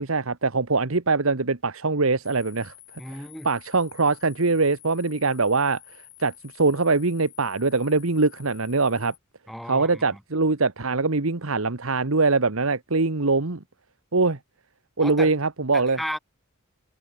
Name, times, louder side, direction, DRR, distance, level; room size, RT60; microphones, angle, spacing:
voice 1, 0.0-2.7 3.1-9.1 9.7-13.6 14.1-14.4 15.0-16.0, right 3 dB, 70° right, 1.4 m, -23 dB
sound 1, 2.2-9.2, left 16 dB, 65° left, 6.5 m, -50 dB
voice 2, 3.0-3.5 9.5-10.2 15.0-15.3 15.7-16.2, equal, ahead, 5.2 m, -34 dB
head